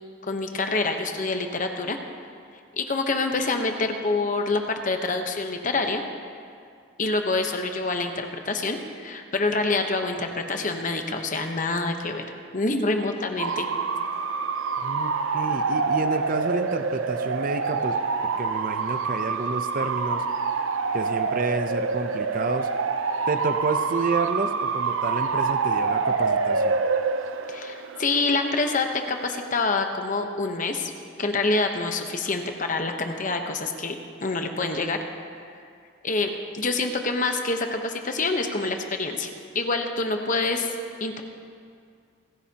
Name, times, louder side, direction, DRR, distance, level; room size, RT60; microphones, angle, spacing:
voice 1, 0.2-2.0 2.8-6.0 7.0-12.2 12.5-13.6 27.5-30.9 31.2-33.9 34.2-35.0 36.0-40.7 41.0-41.2, left 3 dB, 40° left, 5 dB, 1.0 m, -26 dB
Bark / Motor vehicle (road) / Siren, 13.4-29.6, right 4 dB, 85° right, 0.6 m, -27 dB
voice 2, 14.8-18.0 18.4-20.2 20.9-22.7 23.3-26.8, right 3 dB, 45° right, 8 dB, 0.6 m, -30 dB
29.5 x 9.8 x 2.9 m, 2.3 s
head